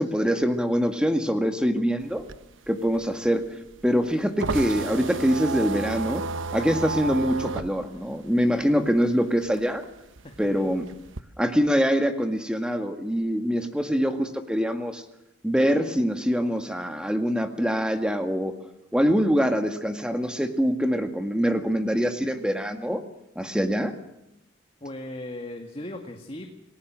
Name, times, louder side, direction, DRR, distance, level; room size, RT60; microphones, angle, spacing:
voice 1, 0.0-2.2 2.7-3.4 3.8-6.3 6.5-9.8 10.4-10.9 11.4-15.0 15.4-18.5 18.9-23.0 23.4-23.9, equal, 5° right, 7 dB, 2.0 m, -24 dB
sound 1, 2.0-9.1 9.4-11.2, right 4 dB, 75° right, 1.1 m, -32 dB
voice 2, 10.2-10.7 24.8-26.5, left 1 dB, 30° left, 3 dB, 2.1 m, -37 dB
29.0 x 18.5 x 7.6 m, 0.87 s
head